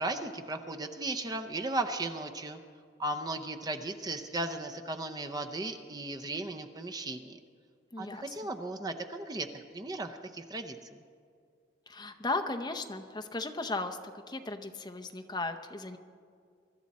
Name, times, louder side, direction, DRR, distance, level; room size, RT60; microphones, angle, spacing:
voice 1, 0.0-2.6 3.0-7.4 8.0-11.0, right 2 dB, 20° right, 5 dB, 0.6 m, -36 dB
voice 2, 7.9-8.2 11.9-14.0 14.3-16.0, left 2 dB, 20° left, 7 dB, 0.7 m, -36 dB
23.5 x 13.0 x 4.2 m, 2.2 s
head